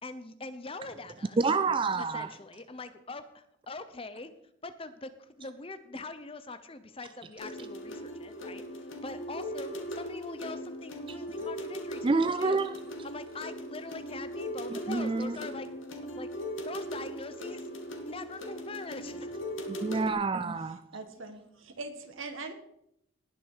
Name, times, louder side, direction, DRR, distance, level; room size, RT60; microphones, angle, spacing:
voice 1, 0.0-1.4 2.0-4.3 4.6-5.1 5.4-8.6 9.0-12.6 13.0-15.7 16.1-16.3 16.6-17.6 18.0-19.4, left 3 dB, 30° left, 0.8 m, -43 dB
voice 2, 1.4-2.3 12.0-12.7 14.7-15.4 19.7-20.8, right 4 dB, 25° right, 0.4 m, -28 dB
sound 1, 7.4-20.1, equal, 80° left, 2.2 m, -39 dB
voice 3, 20.6-22.5, right 3 dB, 85° right, 1.8 m, -42 dB
19.0 x 6.4 x 4.8 m
head